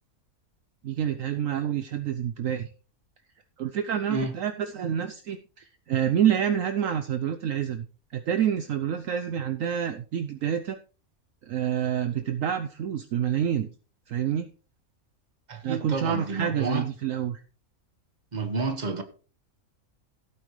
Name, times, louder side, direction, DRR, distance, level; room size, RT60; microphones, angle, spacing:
voice 1, 0.8-2.7 3.6-7.9 8.1-10.8 11.4-13.7 14.1-14.5 15.6-17.4, right 9 dB, 70° right, 1.0 m, -28 dB
voice 2, 4.1-4.4 15.5-16.9 18.3-19.0, right 4 dB, 30° right, 1.5 m, -30 dB
16.0 x 8.6 x 3.2 m
omnidirectional pair, 1.5 m